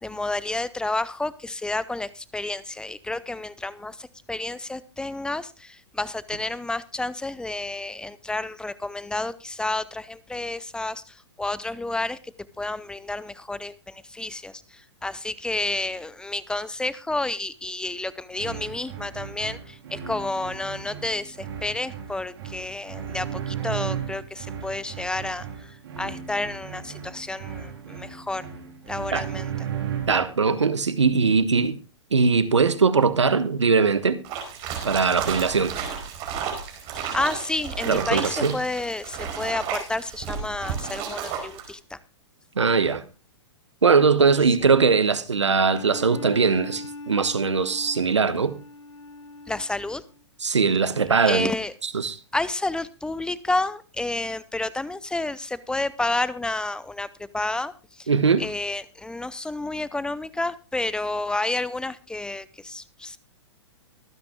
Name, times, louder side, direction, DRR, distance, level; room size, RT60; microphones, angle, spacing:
voice 1, 0.0-28.5 28.9-29.7 37.1-42.0 49.5-50.0 51.2-51.7 52.3-58.1 58.4-63.2, left 2 dB, 5° left, 0.5 m, -30 dB
sound 1, 18.3-30.4, right 8 dB, 60° right, 3.9 m, -35 dB
voice 2, 30.1-31.8 32.1-34.2 34.8-35.7 37.9-38.6 42.6-43.0 43.8-48.5 50.4-51.5 51.9-52.2 58.1-58.4, right 5 dB, 90° right, 1.2 m, -21 dB
sound 2, 34.2-41.7, right 7 dB, 40° right, 4.9 m, -33 dB
Bowed string instrument, 45.5-50.2, left 2 dB, 85° left, 1.8 m, -40 dB
24.0 x 9.6 x 2.3 m
hypercardioid pair, 120°, 15 cm